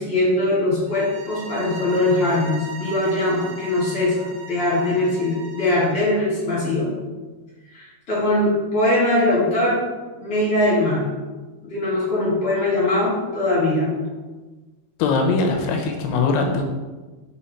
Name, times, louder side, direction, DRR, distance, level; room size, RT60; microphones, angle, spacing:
voice 1, 0.0-6.9 7.7-9.8 10.2-11.0 11.6-13.9, left 1 dB, 40° left, -7 dB, 2.6 m, -21 dB
sound 1, 0.9-6.0, right 4 dB, 85° right, 3.0 m, -38 dB
voice 2, 15.0-16.6, left 4 dB, 85° left, 3 dB, 2.9 m, -21 dB
5.7 x 5.6 x 4.3 m, 1.2 s
omnidirectional pair, 4.7 m